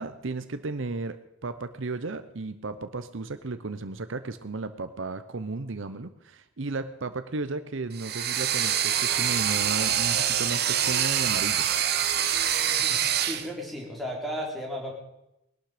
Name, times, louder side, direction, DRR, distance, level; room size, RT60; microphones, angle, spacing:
voice 1, 0.0-11.7, right 3 dB, 65° right, 11 dB, 0.8 m, -34 dB
sound 1, 7.9-13.5, right 9 dB, 50° right, 1.2 m, -25 dB
voice 2, 12.7-14.9, equal, ahead, -2 dB, 3.6 m, -35 dB
20.0 x 12.0 x 5.0 m, 0.85 s
head